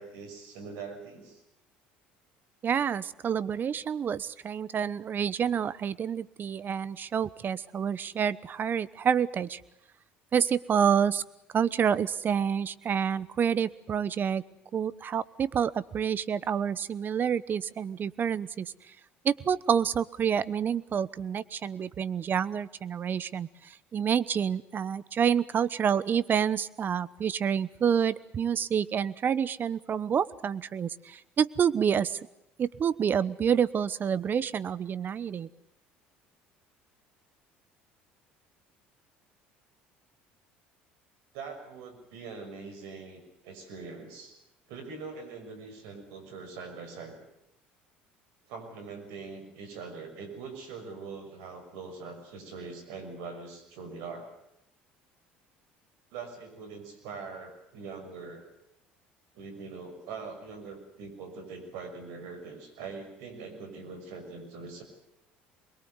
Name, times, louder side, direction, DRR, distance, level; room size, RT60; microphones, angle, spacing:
voice 1, 0.0-1.4 41.3-44.3 44.7-47.2 48.5-54.3 56.1-58.4 59.3-64.8, right 4 dB, 70° right, 7 dB, 6.2 m, -42 dB
voice 2, 2.6-9.6 10.3-11.2 11.5-14.4 14.7-18.7 19.2-32.2 32.6-35.5, right 8 dB, 40° right, 18 dB, 1.0 m, -28 dB
24.0 x 22.0 x 8.1 m, 0.83 s
hypercardioid pair, 70°, 5 cm